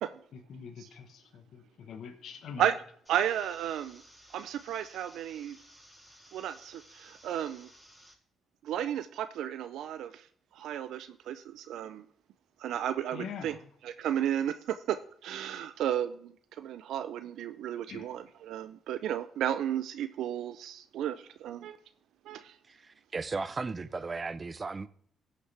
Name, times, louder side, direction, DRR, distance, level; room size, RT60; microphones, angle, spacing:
voice 1, 0.3-2.7 13.1-13.7 17.9-18.1, left 7 dB, 70° left, 1.2 m, -44 dB
sound 1, 3.0-8.1, equal, 5° right, 5.2 m, -57 dB
voice 2, 3.1-4.0 4.3-5.6 6.3-7.7 8.6-10.3 10.5-12.1 12.6-13.6 13.8-15.0 15.2-21.8 22.3-22.5, right 10 dB, 80° right, 0.5 m, -33 dB
voice 3, 22.7-24.9, right 4 dB, 30° right, 0.6 m, -36 dB
16.5 x 6.6 x 3.4 m
cardioid pair, 90°, 0 cm